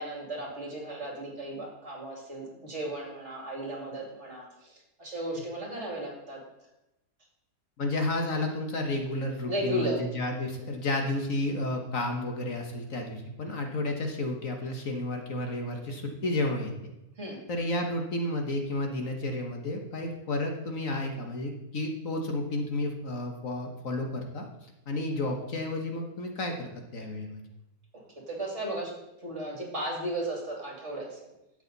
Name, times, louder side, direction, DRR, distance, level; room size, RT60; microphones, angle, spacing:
voice 1, 0.0-6.4 9.5-10.0 17.2-17.4 28.3-31.3, right 1 dB, 45° right, -1 dB, 2.9 m, -35 dB
voice 2, 7.8-16.9 17.5-24.4 24.9-27.4, left 1 dB, 55° left, 3 dB, 1.6 m, -31 dB
12.0 x 8.2 x 4.0 m, 0.91 s
omnidirectional pair, 1.7 m